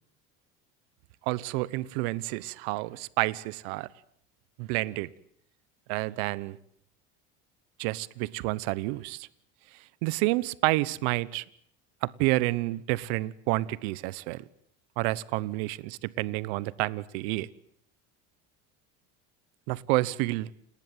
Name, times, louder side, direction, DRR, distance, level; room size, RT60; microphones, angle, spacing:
voice 1, 1.2-3.9 4.6-5.1 5.9-6.6 7.8-9.3 9.7-11.4 12.0-14.5 15.0-17.5 19.7-20.5, right 20 dB, 80° right, 1.1 m, -29 dB
29.5 x 19.5 x 9.2 m
supercardioid pair, 105°, 31 cm